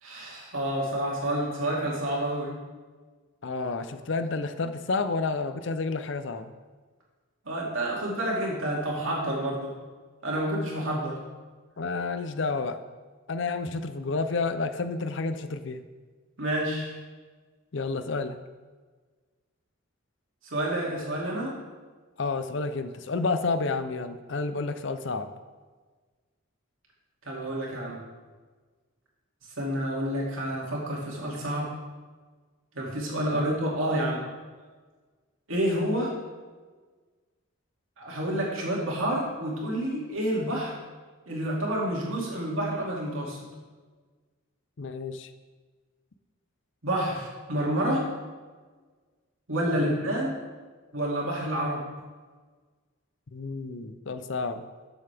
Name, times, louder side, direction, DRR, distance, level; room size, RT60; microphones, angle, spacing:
voice 1, 0.0-2.6 7.4-9.7 10.2-11.2 16.4-16.9 20.4-21.5 27.3-28.0 29.6-31.7 32.7-34.2 35.5-36.1 38.0-40.7 41.3-43.5 46.8-48.1 49.5-50.4 50.9-51.9, right 1 dB, 75° right, -3 dB, 2.6 m, -29 dB
voice 2, 3.4-6.5 11.8-12.8 13.3-15.8 17.7-18.4 22.2-25.3 33.3-33.5 44.8-45.3 49.7-50.0 53.3-54.6, left 3 dB, 60° left, 10 dB, 0.6 m, -30 dB
12.5 x 7.2 x 3.5 m, 1.4 s
head